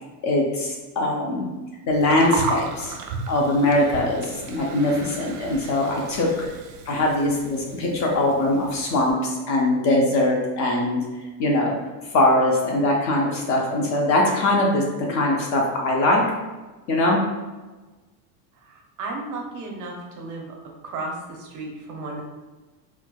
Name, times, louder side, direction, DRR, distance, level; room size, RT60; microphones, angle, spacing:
voice 1, 0.2-1.5 1.9-2.9 3.3-6.5 6.9-11.0 11.4-11.8 12.1-14.8 15.1-16.2 16.9-17.2, left 1 dB, 35° left, -1 dB, 0.5 m, -21 dB
Gurgling, 1.9-9.1, right 4 dB, 85° right, 0.7 m, -35 dB
voice 2, 18.7-20.6 20.8-22.2, right 2 dB, 40° right, 0 dB, 0.6 m, -34 dB
4.5 x 2.2 x 2.2 m, 1.2 s
supercardioid pair, 130°, 49 cm